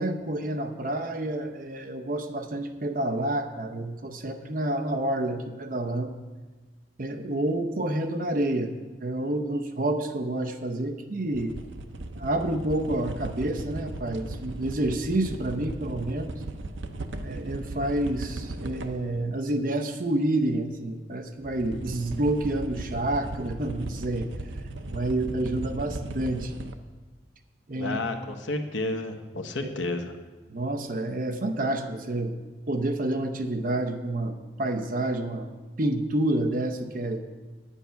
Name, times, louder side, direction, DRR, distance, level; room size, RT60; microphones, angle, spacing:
voice 1, 0.0-6.1 7.0-8.7 9.0-11.5 12.1-16.3 17.2-24.3 24.9-26.5 27.7-28.0 29.6-29.7 30.5-32.4 32.7-35.5 35.8-37.2, right 1 dB, 45° right, 6 dB, 0.8 m, -28 dB
sound 1, 11.3-19.1 21.4-26.7, right 2 dB, 80° right, 0.7 m, -37 dB
voice 2, 27.8-30.1, left 2 dB, 90° left, 5 dB, 1.1 m, -31 dB
9.9 x 8.2 x 5.7 m, 1.3 s
head